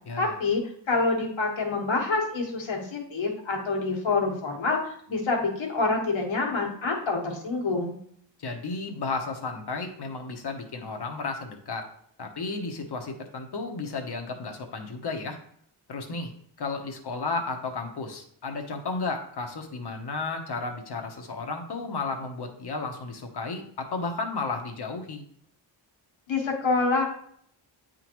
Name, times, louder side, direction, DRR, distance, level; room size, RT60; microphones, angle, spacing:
voice 1, 0.2-0.6 0.9-8.0 26.3-27.1, left 3 dB, 80° left, 0 dB, 1.7 m, -27 dB
voice 2, 8.4-11.8 12.2-15.4 15.9-16.3 16.6-25.2, left 3 dB, 60° left, 4 dB, 1.1 m, -33 dB
9.3 x 3.8 x 3.1 m, 0.64 s
wide cardioid pair, 140°, 45 cm